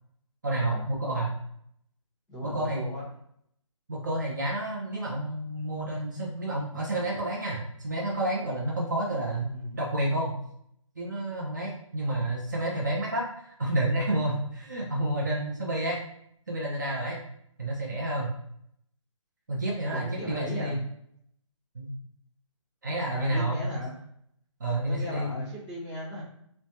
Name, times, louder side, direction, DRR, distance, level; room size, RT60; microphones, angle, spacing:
voice 1, 0.4-1.3 2.4-2.8 3.9-10.3 11.0-16.0 16.5-17.2 17.6-18.3 19.5-20.8 21.7-21.9 22.8-23.8 24.6-25.5, right 1 dB, 35° right, -4 dB, 0.6 m, -30 dB
voice 2, 2.3-3.0 9.5-9.8 19.8-20.8 23.1-24.0 24.9-26.2, left 1 dB, 10° left, -11 dB, 0.8 m, -37 dB
3.2 x 2.1 x 2.7 m, 0.71 s
hypercardioid pair, 175°, 17 cm